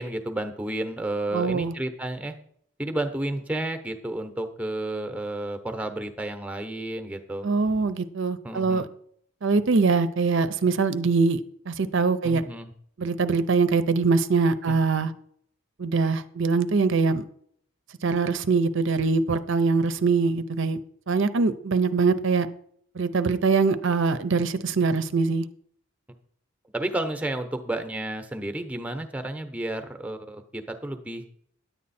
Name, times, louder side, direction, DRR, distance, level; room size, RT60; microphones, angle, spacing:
voice 1, 0.0-2.3 2.8-7.5 8.4-8.9 12.2-12.7 14.7-14.8 26.7-31.2, right 1 dB, 5° right, 7 dB, 0.8 m, -31 dB
voice 2, 1.3-1.7 7.4-8.9 9.4-11.4 11.7-12.4 13.0-15.1 15.8-17.3 18.0-20.8 21.1-22.5 22.9-25.5, right 4 dB, 60° right, 12 dB, 0.6 m, -23 dB
10.5 x 8.5 x 4.2 m, 0.65 s
head